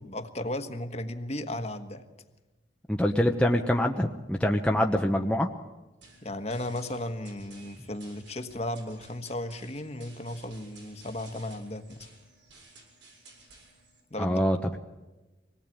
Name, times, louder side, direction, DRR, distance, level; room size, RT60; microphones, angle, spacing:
voice 1, 0.0-2.0 6.2-12.1 14.1-14.5, left 1 dB, 35° left, 7 dB, 1.5 m, -35 dB
voice 2, 2.9-5.5 14.2-14.8, equal, 5° left, 2 dB, 0.9 m, -25 dB
sound 1, 6.0-14.0, right 3 dB, 85° right, 7.2 m, -55 dB
25.5 x 18.5 x 8.9 m, 1.1 s
head